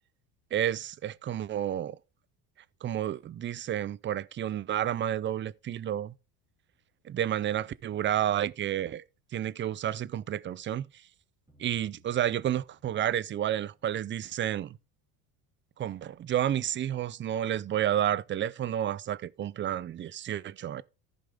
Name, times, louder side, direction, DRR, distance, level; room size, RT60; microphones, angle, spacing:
voice 1, 0.5-2.0 2.8-6.1 7.0-9.0 9.3-10.9 11.6-14.8 15.8-20.8, right 11 dB, 25° right, 0.5 m, -30 dB
sound 1, 11.5-14.6, equal, 10° right, 3.1 m, -64 dB
14.5 x 5.3 x 3.6 m
hypercardioid pair, 80°, 45 cm